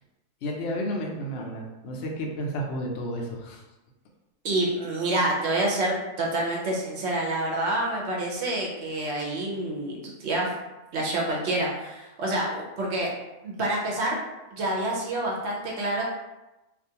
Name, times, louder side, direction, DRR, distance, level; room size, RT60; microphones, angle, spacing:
voice 1, 0.4-3.6, equal, 65° left, 0 dB, 0.7 m, -32 dB
voice 2, 4.4-10.5 10.9-13.1 13.4-14.2 14.5-16.0, right 1 dB, 60° right, -2 dB, 0.8 m, -27 dB
2.5 x 2.3 x 2.7 m, 1.0 s
omnidirectional pair, 1.4 m